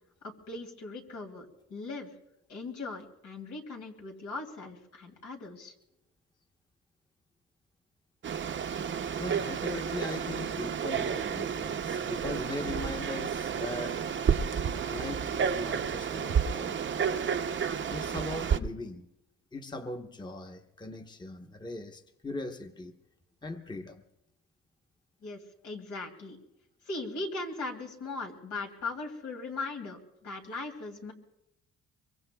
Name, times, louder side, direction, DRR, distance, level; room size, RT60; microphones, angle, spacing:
voice 1, 0.2-2.1 2.5-5.7 25.2-26.4 26.8-31.1, left 3 dB, 80° left, 2.5 m, -39 dB
Frog, 8.2-18.6, right 7 dB, 40° right, 0.7 m, -31 dB
voice 2, 9.2-14.0 14.9-17.3 17.9-19.1 19.5-23.0 23.4-24.0, left 2 dB, 15° left, 0.9 m, -40 dB
23.5 x 23.5 x 2.3 m
cardioid pair, 90°, 30 cm